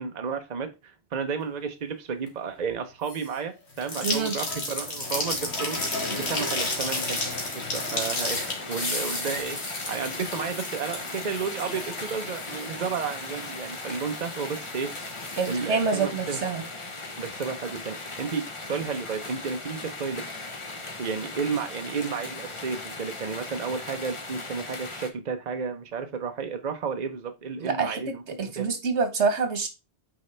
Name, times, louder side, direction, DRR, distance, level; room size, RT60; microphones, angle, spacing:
voice 1, 0.0-5.8 6.1-7.2 7.5-9.6 9.9-14.9 15.4-16.4 17.2-20.4 21.0-28.2 28.6-28.7, right 5 dB, 40° right, 6 dB, 0.9 m, -32 dB
sound 1, 3.1-3.4 3.7-15.5, left 2 dB, 75° left, 1.9 m, -33 dB
voice 2, 4.0-4.4 15.4-16.6 27.6-29.7, right 5 dB, 85° right, 8 dB, 1.5 m, -27 dB
sound 2, 5.8-25.1, left 3 dB, 30° left, 1.0 m, -38 dB
8.7 x 4.1 x 3.3 m, 0.26 s
omnidirectional pair, 1.1 m